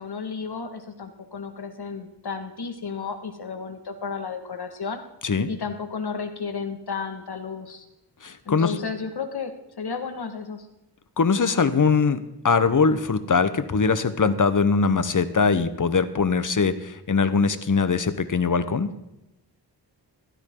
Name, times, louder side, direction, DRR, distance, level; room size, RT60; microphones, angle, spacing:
voice 1, 0.0-5.0 5.5-7.9 8.5-10.7, left 5 dB, 60° left, 6 dB, 2.0 m, -33 dB
voice 2, 8.2-8.7 11.2-18.9, left 5 dB, 45° left, 12 dB, 1.1 m, -22 dB
16.5 x 13.5 x 3.9 m, 0.92 s
wide cardioid pair, 100°, 43 cm